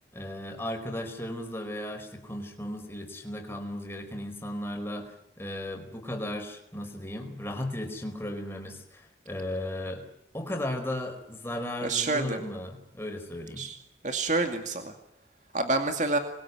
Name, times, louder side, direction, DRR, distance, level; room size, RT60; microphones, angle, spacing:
voice 1, 0.1-10.0 10.3-13.7, left 1 dB, 15° left, 4 dB, 4.7 m, -36 dB
voice 2, 11.8-12.4 13.6-13.7 14.0-14.9 15.5-16.2, right 3 dB, 40° right, 5 dB, 2.3 m, -27 dB
27.5 x 22.0 x 9.5 m, 0.83 s
head